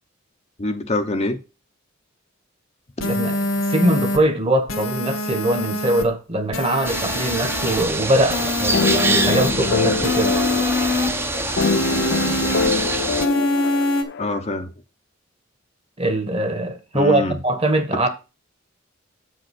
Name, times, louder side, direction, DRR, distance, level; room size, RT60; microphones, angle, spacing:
voice 1, 0.6-1.4 14.2-14.7 16.9-17.4 17.9-18.1, left 2 dB, 35° left, 0.8 m, -25 dB
sound 1, 3.0-4.2 4.7-6.0 6.5-7.8 8.3-9.5 10.0-11.1 11.6-12.7 13.2-14.0, left 2 dB, 75° left, 1.6 m, -24 dB
voice 2, 3.0-10.4 16.0-18.1, right 1 dB, 30° right, 1.3 m, -22 dB
sound 2, 6.8-13.3, right 2 dB, 10° right, 0.8 m, -25 dB
sound 3, 8.7-14.4, left 4 dB, 55° left, 0.5 m, -24 dB
7.6 x 5.3 x 5.9 m
head